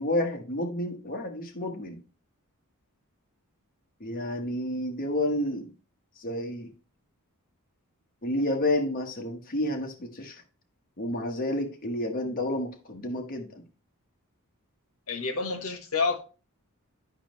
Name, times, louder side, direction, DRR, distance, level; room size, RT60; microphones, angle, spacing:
voice 1, 0.0-2.0 4.0-5.7 6.2-6.7 8.2-10.4 11.0-13.6, left 1 dB, 40° left, 1.1 m, -30 dB
voice 2, 15.1-16.2, left 4 dB, 70° left, 1.2 m, -28 dB
11.0 x 5.2 x 3.0 m
head